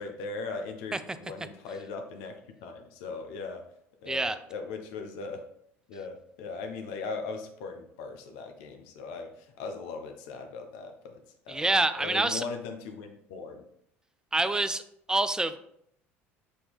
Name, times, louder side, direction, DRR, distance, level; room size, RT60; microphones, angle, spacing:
voice 1, 0.0-3.7 4.0-5.4 5.9-11.2 11.5-13.6, left 4 dB, 70° left, 5 dB, 0.5 m, -39 dB
voice 2, 11.5-12.4 14.3-14.8 15.1-15.6, right 2 dB, 10° right, 11 dB, 0.3 m, -26 dB
4.2 x 2.8 x 3.4 m, 0.72 s
hypercardioid pair, 70°, 7 cm